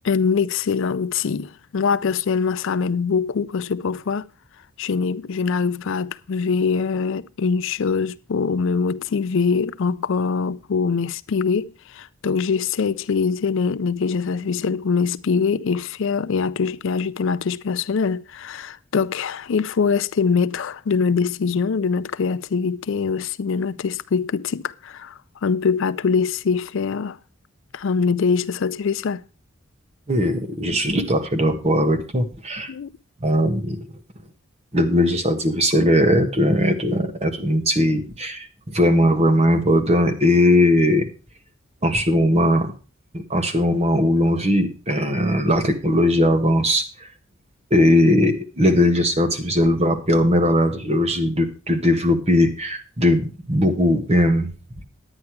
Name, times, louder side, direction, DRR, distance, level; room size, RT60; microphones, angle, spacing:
voice 1, 0.0-4.2 4.8-27.2 27.7-29.2 32.7-32.9, left 5 dB, 65° left, 0.4 m, -23 dB
voice 2, 30.1-32.7 33.2-34.0 34.7-41.1 41.8-42.7 43.1-47.1 47.7-54.5, left 1 dB, 30° right, 1.5 m, -19 dB
10.0 x 9.6 x 4.6 m
head